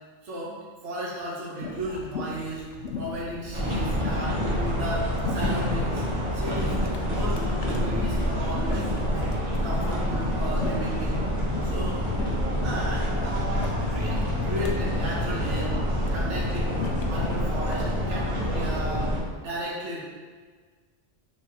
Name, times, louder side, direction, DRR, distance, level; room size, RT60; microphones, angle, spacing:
voice 1, 0.2-2.6 2.9-6.0 6.3-7.4 7.8-9.3 9.6-11.2 11.6-12.0 12.6-15.7 16.1-16.7 17.1-20.0, right 1 dB, 70° right, -5 dB, 1.2 m, -35 dB
sound 1, 1.6-18.8, left 3 dB, 70° left, 0.8 m, -38 dB
sound 2, 3.5-19.2, equal, 30° right, 0.8 m, -27 dB
5.0 x 3.4 x 2.8 m, 1.5 s
omnidirectional pair, 1.3 m